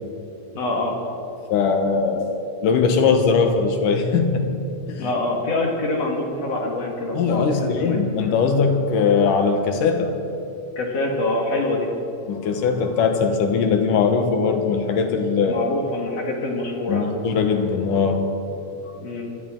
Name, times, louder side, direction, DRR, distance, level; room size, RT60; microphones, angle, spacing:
voice 1, 0.5-1.0 5.0-8.0 10.8-11.9 15.5-17.2 19.0-19.3, left 2 dB, 55° left, -1 dB, 2.7 m, -25 dB
voice 2, 1.5-2.4 2.6-4.4 4.9-5.1 7.1-10.2 12.3-15.7 16.9-18.3, left 5 dB, 85° left, 5 dB, 2.8 m, -20 dB
26.0 x 12.5 x 3.8 m, 2.7 s
omnidirectional pair, 3.6 m